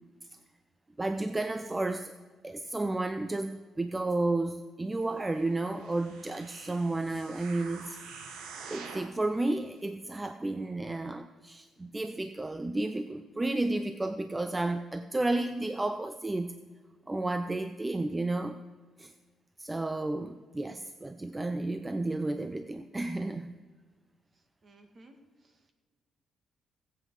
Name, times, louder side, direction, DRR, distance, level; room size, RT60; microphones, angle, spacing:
voice 1, 1.0-2.1 2.4-8.0 8.7-16.6 17.1-18.6 19.0-19.1 19.6-23.6, right 2 dB, 15° right, 10 dB, 0.5 m, -32 dB
sound 1, 5.6-9.2 9.8-9.9, right 5 dB, 85° right, 1.2 m, -46 dB
voice 2, 24.3-25.7, right 1 dB, 40° right, 6 dB, 1.9 m, -59 dB
17.0 x 8.0 x 4.8 m, 1.5 s
cardioid pair, 90°, 0 cm